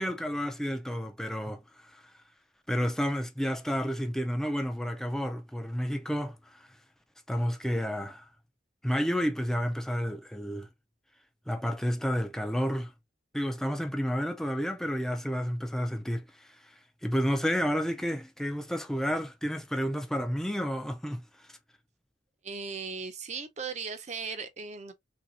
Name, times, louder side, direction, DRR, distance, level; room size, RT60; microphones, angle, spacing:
voice 1, 0.0-2.0 2.7-6.7 7.3-8.2 8.8-10.7 11.5-12.9 13.3-16.7 17.0-21.2, equal, 5° left, 0.5 m, -31 dB
voice 2, 22.4-24.9, right 5 dB, 40° right, 0.6 m, -37 dB
3.3 x 2.7 x 2.8 m
head